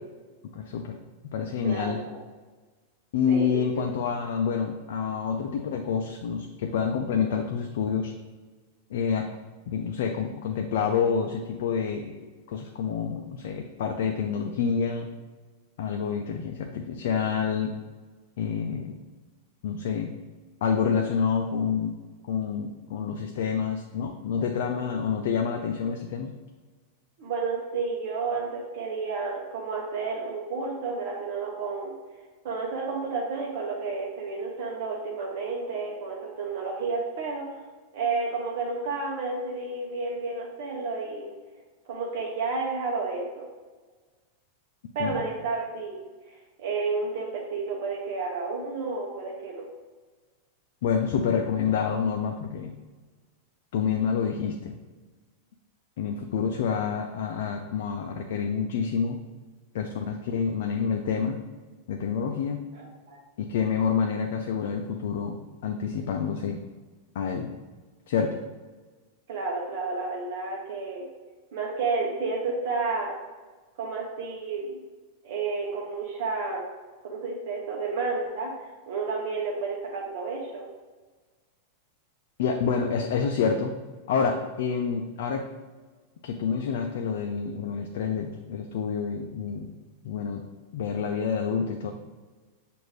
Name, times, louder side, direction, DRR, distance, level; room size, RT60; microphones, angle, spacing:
voice 1, 0.5-1.0 1.3-2.0 3.1-8.1 8.9-9.3 9.7-12.2 12.5-15.1 15.8-17.7 18.4-19.0 19.6-20.1 20.6-21.9 22.2-26.3 45.0-45.2 50.8-52.7 53.7-54.7 56.0-59.2 59.7-61.4 61.9-62.6 63.4-66.6 67.1-67.5 68.1-68.4 82.4-83.7 84.1-85.5 86.2-89.7 90.0-90.4 90.7-91.9, left 6 dB, 65° left, 3 dB, 0.4 m, -28 dB
voice 2, 1.6-2.2 3.3-3.6 27.2-32.0 32.4-37.5 37.9-41.3 41.9-43.5 44.9-46.1 46.6-49.7 62.7-63.2 69.3-71.1 71.5-73.2 73.8-74.7 75.2-76.6 77.0-80.7, right 4 dB, 65° right, -2 dB, 0.7 m, -31 dB
6.4 x 2.5 x 3.1 m, 1.3 s
hypercardioid pair, 95°, 0 cm